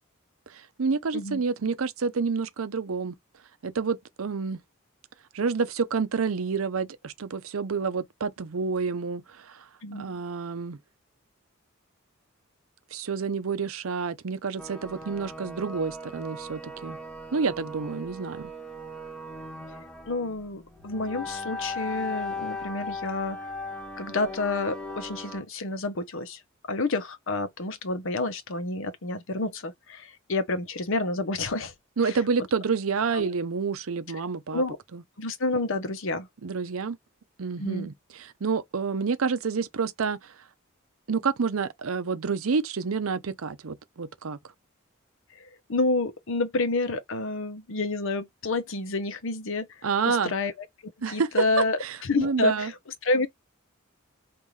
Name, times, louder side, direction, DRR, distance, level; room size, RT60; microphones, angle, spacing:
voice 1, 0.5-3.1 3.6-4.6 5.3-9.6 9.9-10.8 12.9-17.0 17.3-18.5 32.0-34.6 34.9-35.0 36.4-37.0 37.4-37.9 38.4-40.2 41.1-44.4 49.8-50.3 51.0-51.3 51.8-52.7, right 5 dB, 80° right, 0.6 m, -28 dB
sound 1, 14.6-25.4, left 2 dB, 5° left, 0.9 m, -38 dB
voice 2, 20.1-23.4 24.0-26.4 26.7-31.7 32.0-32.2 33.1-33.3 34.5-34.8 35.2-36.3 37.6-37.9 45.3-49.7 50.0-50.7 51.1-52.7 53.0-53.3, left 2 dB, 65° left, 0.8 m, -29 dB
5.4 x 2.5 x 3.2 m
head